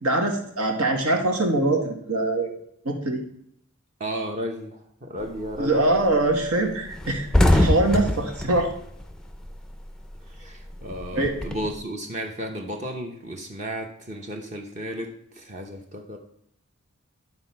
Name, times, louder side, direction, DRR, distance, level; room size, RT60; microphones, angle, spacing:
voice 1, 0.0-2.5 2.8-3.2 5.6-7.3 7.5-8.7 11.1-11.3, right 2 dB, 80° right, 3 dB, 1.7 m, -23 dB
voice 2, 4.0-5.8 10.3-16.2, equal, 30° right, 2 dB, 0.8 m, -34 dB
sound 1, 5.2-5.6 5.9-6.1 6.4-6.5 6.8-9.8 10.1-11.8, left 1 dB, 5° left, 0.4 m, -23 dB
11.5 x 4.0 x 5.7 m, 0.71 s
head